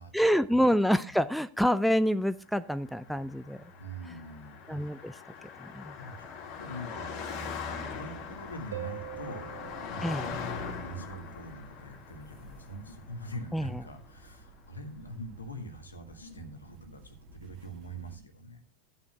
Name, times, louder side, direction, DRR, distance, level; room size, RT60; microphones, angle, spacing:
voice 1, 0.1-3.6 4.1-4.2 4.7-5.2 5.6-5.9 10.0-10.3 13.5-13.7, equal, ahead, 13 dB, 0.4 m, -27 dB
Car passing by, 2.7-14.2, left 5 dB, 45° left, 2.3 m, -41 dB
voice 2, 3.8-4.8 6.0-6.3 6.6-18.6, right 1 dB, 75° left, 5 dB, 1.8 m, -44 dB
sound 1, 8.1-18.2, right 2 dB, 40° right, 1.8 m, -55 dB
Harp, 8.7-11.2 14.7-14.8, right 11 dB, 70° right, 1.3 m, -44 dB
14.5 x 9.2 x 2.3 m, 0.36 s
figure-of-eight pair, 90°, 0 cm